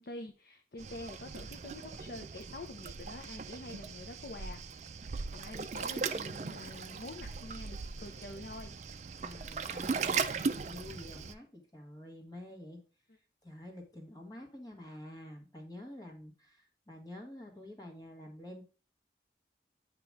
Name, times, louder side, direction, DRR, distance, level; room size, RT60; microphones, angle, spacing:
voice 1, 0.0-4.6 5.3-8.8, left 2 dB, 60° left, 0.6 m, -46 dB
Waves surf, 0.8-11.3, right 5 dB, 40° right, 0.4 m, -38 dB
voice 2, 9.2-12.8 13.4-18.6, left 1 dB, 20° left, 1.5 m, -48 dB
8.7 x 3.0 x 4.7 m
head